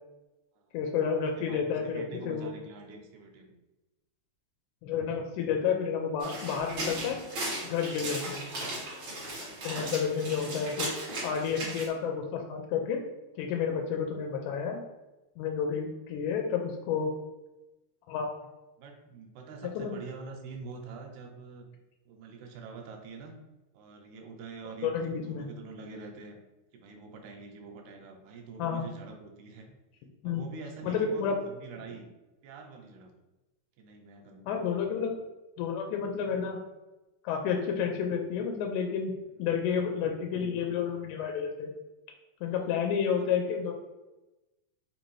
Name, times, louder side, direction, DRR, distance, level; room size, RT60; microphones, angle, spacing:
voice 1, 0.7-2.5 4.8-7.2 7.6-8.4 9.6-10.9 11.2-13.0 13.4-14.8 15.4-17.1 18.1-18.3 19.8-20.0 24.8-25.5 28.6-28.8 30.2-30.4 30.8-31.4 34.5-35.1 35.6-36.6 37.2-41.7 42.4-43.7, left 7 dB, 85° left, 2 dB, 2.0 m, -30 dB
voice 2, 1.4-3.6 9.4-9.7 18.8-21.7 22.1-23.4 23.7-26.4 26.7-29.7 30.2-32.1 32.4-33.1 33.8-35.2 39.4-39.5 42.5-42.8 43.2-43.3, right 4 dB, 85° right, 3 dB, 2.0 m, -45 dB
sound 1, 6.2-11.9, right 1 dB, 55° right, 1.7 m, -37 dB
4.7 x 2.6 x 3.1 m, 1.0 s
omnidirectional pair, 3.5 m